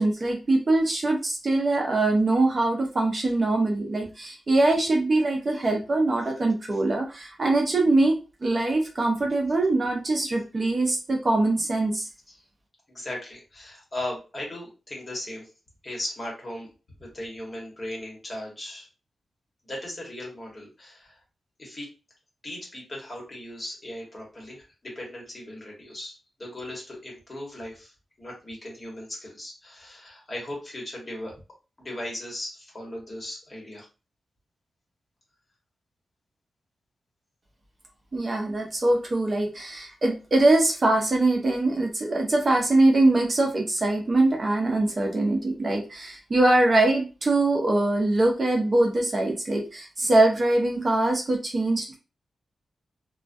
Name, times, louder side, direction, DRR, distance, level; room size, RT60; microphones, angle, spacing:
voice 1, 0.0-8.1 8.4-12.1 38.1-52.0, right 2 dB, 35° right, 1 dB, 0.5 m, -23 dB
voice 2, 12.9-15.5 15.8-16.7 17.0-18.9 19.7-21.2 21.6-21.9 22.4-31.3 31.8-33.9, left 1 dB, 30° left, -2 dB, 1.1 m, -37 dB
2.2 x 2.2 x 2.5 m, 0.31 s
wide cardioid pair, 115°, 0 cm